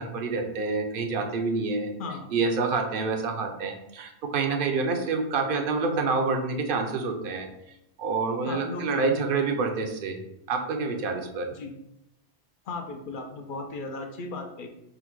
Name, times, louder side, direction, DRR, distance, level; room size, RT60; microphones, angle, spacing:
voice 1, 0.0-1.9 2.3-7.5 8.0-10.2 10.5-11.5, right 4 dB, 60° right, 4 dB, 0.6 m, -27 dB
voice 2, 8.4-9.0 11.5-11.7 12.7-14.7, left 3 dB, 60° left, 4 dB, 0.6 m, -36 dB
3.7 x 2.1 x 4.4 m, 0.84 s
omnidirectional pair, 1.2 m